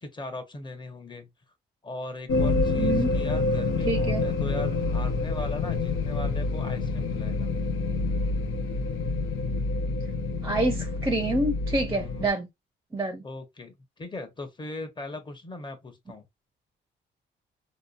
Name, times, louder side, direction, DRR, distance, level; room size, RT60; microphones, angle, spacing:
voice 1, 0.0-1.3 1.8-7.5 11.9-12.3 13.2-16.3, left 2 dB, 25° left, 0.9 m, -39 dB
sound 1, 2.3-12.3, left 3 dB, 85° left, 0.6 m, -27 dB
voice 2, 2.8-3.1 3.9-4.2 10.4-12.5 12.9-13.2, right 2 dB, 15° right, 0.6 m, -27 dB
2.9 x 2.1 x 2.4 m
cardioid pair, 90°, 20 cm